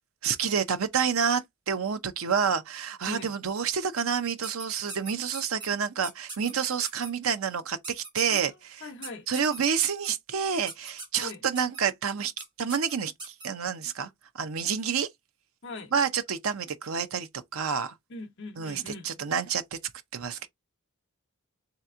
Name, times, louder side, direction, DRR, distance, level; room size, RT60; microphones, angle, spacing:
voice 1, 0.2-8.8 9.3-12.3 12.6-14.1 14.3-15.1 15.9-17.9 18.6-19.8 20.1-20.5, right 6 dB, 65° right, 0.6 m, -29 dB
sound 1, 4.4-5.7 6.0-6.5 6.8-7.1 7.8-8.4 9.0-10.1 10.7-11.2 11.5-11.8 12.4-12.5 12.7-13.5, right 3 dB, 20° right, 1.9 m, -39 dB
voice 2, 8.8-9.3 11.2-11.4 15.6-15.9 18.1-19.1, left 3 dB, 55° left, 0.9 m, -40 dB
3.4 x 2.9 x 3.6 m
head